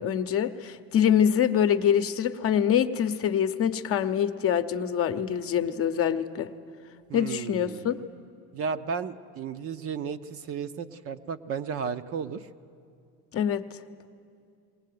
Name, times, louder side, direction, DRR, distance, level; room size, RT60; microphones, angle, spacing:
voice 1, 0.0-6.5 7.1-8.0 13.3-13.6, left 9 dB, 40° left, 9 dB, 0.9 m, -25 dB
voice 2, 7.1-8.0 8.5-12.5, right 6 dB, 40° right, 10 dB, 0.7 m, -34 dB
21.0 x 18.0 x 9.4 m, 2.4 s
supercardioid pair, 120°, 35 cm